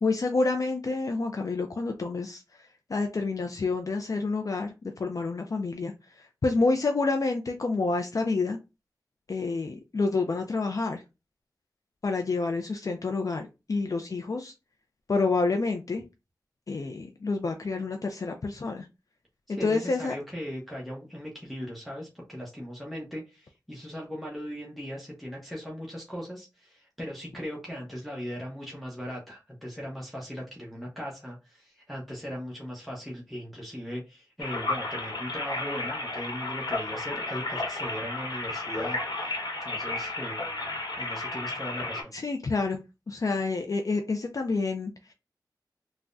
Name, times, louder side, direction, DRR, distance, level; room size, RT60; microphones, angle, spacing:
voice 1, 0.0-8.6 9.3-11.0 12.0-14.5 15.1-16.0 16.7-18.9 19.5-20.2 42.1-45.1, left 3 dB, 50° left, 4 dB, 0.3 m, -28 dB
voice 2, 19.5-39.3 39.6-42.1, equal, ahead, -3 dB, 0.8 m, -38 dB
sound 1, 34.4-42.0, left 2 dB, 85° left, 1.0 m, -33 dB
3.4 x 2.1 x 2.5 m, 0.27 s
wide cardioid pair, 65°, 7 cm